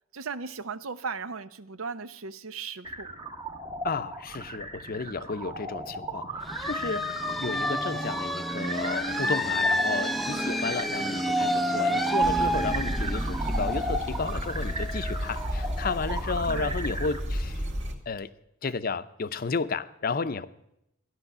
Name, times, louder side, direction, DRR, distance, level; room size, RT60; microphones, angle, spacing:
voice 1, 0.1-3.1 10.3-10.6 16.5-16.9 18.6-18.7, right 5 dB, 90° right, 0.7 m, -37 dB
sound 1, 2.8-17.2, right 1 dB, 20° right, 0.9 m, -37 dB
voice 2, 3.8-17.6 18.1-18.3 18.6-20.5, left 4 dB, 45° left, 0.6 m, -33 dB
sound 2, 6.4-15.9, equal, ahead, 0.6 m, -29 dB
sound 3, 12.2-17.9, equal, 60° right, 2.0 m, -32 dB
14.0 x 11.0 x 6.7 m
head